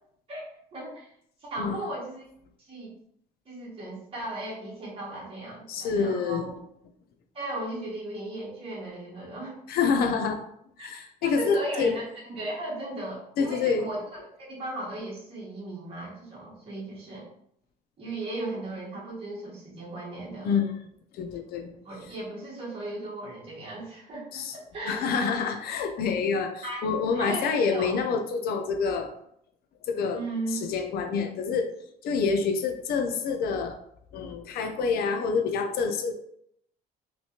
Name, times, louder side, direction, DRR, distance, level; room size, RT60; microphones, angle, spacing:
voice 1, 0.7-1.1 1.4-2.2 2.6-2.9 3.5-6.5 7.3-9.6 10.8-14.0 14.4-17.2 18.0-20.5 21.8-25.0 26.6-26.8 27.1-27.9 30.1-30.6, right 2 dB, 35° right, -6 dB, 1.3 m, -36 dB
voice 2, 1.6-1.9 5.7-6.5 9.7-10.4 10.8-12.0 13.4-13.9 20.4-20.8 21.1-21.7 24.3-24.5 24.9-29.1 29.9-30.2 30.5-31.7 32.0-33.8 34.1-36.1, left 5 dB, 65° left, 5 dB, 0.5 m, -27 dB
3.1 x 3.0 x 2.8 m, 0.71 s
cardioid pair, 110°, 17 cm